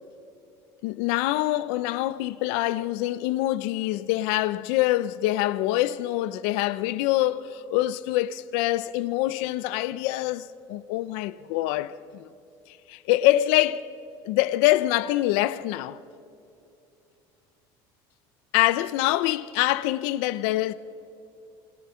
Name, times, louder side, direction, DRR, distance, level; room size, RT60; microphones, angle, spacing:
voice 1, 0.8-12.3 12.9-13.9 14.2-16.0 18.5-20.7, left 16 dB, 85° left, 0.7 m, -25 dB
28.0 x 22.5 x 5.7 m
cardioid pair, 145°, 10 cm